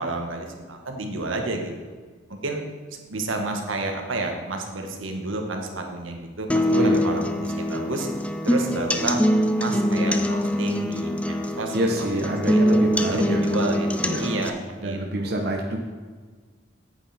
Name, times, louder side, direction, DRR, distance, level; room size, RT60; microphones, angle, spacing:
voice 1, 0.0-1.9 2.3-2.6 2.9-8.1 8.4-9.2 9.6-12.1 12.4-12.8 13.1-14.5 14.8-15.4, right 2 dB, 85° right, 3 dB, 1.4 m, -31 dB
sound 1, 6.5-14.5, equal, 5° left, 0.4 m, -23 dB
voice 2, 6.7-7.3 11.7-13.4 14.0-14.3 14.8-15.8, right 1 dB, 55° right, 1 dB, 1.0 m, -27 dB
9.1 x 8.2 x 4.3 m, 1.4 s
head